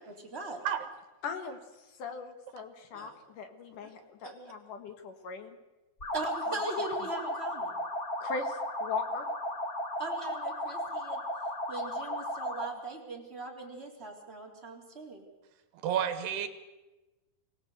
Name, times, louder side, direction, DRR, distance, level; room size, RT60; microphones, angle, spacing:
voice 1, 0.1-0.6 2.9-3.1 3.8-3.9 4.2-4.4 6.1-7.7 10.0-11.2 11.7-15.2, right 2 dB, 15° right, -2 dB, 3.5 m, -40 dB
voice 2, 1.2-5.6 8.2-9.3, left 4 dB, 60° left, 7 dB, 2.8 m, -39 dB
sound 1, 6.0-12.8, left 1 dB, 25° left, 1.8 m, -35 dB
voice 3, 15.8-16.5, right 9 dB, 80° right, 9 dB, 3.4 m, -30 dB
24.0 x 17.5 x 8.1 m, 1.1 s
omnidirectional pair, 4.7 m